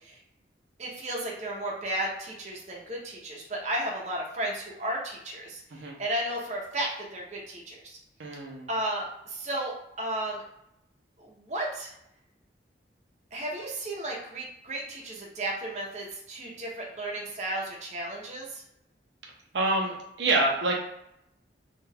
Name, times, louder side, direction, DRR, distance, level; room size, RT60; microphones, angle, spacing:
voice 1, 0.8-8.0 8.7-10.4 11.2-11.9 13.3-18.6, right 1 dB, 40° right, -2 dB, 0.6 m, -34 dB
voice 2, 8.2-8.7 19.5-20.8, right 2 dB, 80° right, -1 dB, 0.6 m, -27 dB
2.8 x 2.2 x 3.3 m, 0.79 s
head